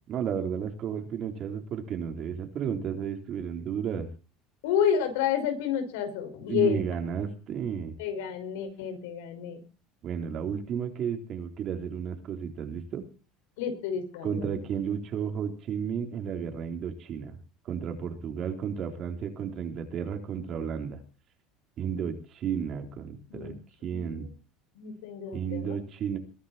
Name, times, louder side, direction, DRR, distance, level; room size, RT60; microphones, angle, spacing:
voice 1, 0.1-4.1 6.5-7.9 10.0-13.0 14.2-17.4 17.6-21.0 21.8-23.5 23.8-24.3 25.3-26.2, right 7 dB, 45° right, 5 dB, 4.0 m, -33 dB
voice 2, 4.6-6.9 8.0-9.6 13.6-14.5 23.3-23.6 23.9-24.3 24.8-25.8, left 8 dB, 85° left, 7 dB, 5.7 m, -30 dB
22.0 x 11.5 x 4.4 m, 0.35 s
supercardioid pair, 115°, 0 cm